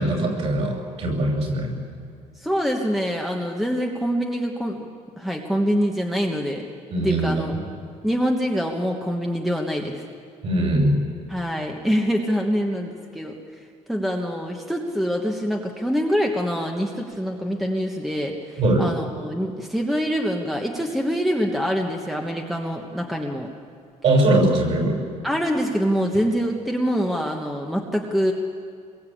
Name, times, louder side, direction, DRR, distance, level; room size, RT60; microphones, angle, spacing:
voice 1, 0.0-1.7 6.9-7.3 10.4-11.0 18.6-18.8 24.0-25.0, right 1 dB, 50° right, 2 dB, 6.2 m, -21 dB
voice 2, 2.4-4.9 5.2-6.6 7.0-7.5 8.0-10.0 11.3-13.4 13.9-23.5 25.2-28.3, equal, ahead, 1 dB, 1.3 m, -25 dB
26.5 x 21.5 x 8.6 m, 2.2 s
cardioid pair, 175°, 13 cm